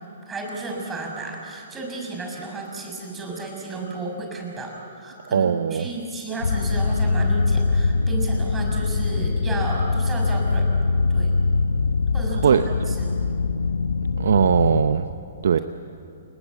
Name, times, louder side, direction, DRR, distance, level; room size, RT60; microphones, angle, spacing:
voice 1, 0.3-10.7 11.1-11.3 12.1-12.6 12.9-13.2, right 3 dB, 15° right, 0 dB, 6.1 m, -33 dB
voice 2, 5.3-5.9 12.4-12.6 14.2-15.1 15.4-15.6, right 7 dB, 70° right, 10 dB, 0.7 m, -19 dB
sound 1, 6.4-14.9, left 4 dB, 85° left, 1.3 m, -22 dB
29.0 x 19.5 x 8.4 m, 2.7 s
hypercardioid pair, 130°, 0 cm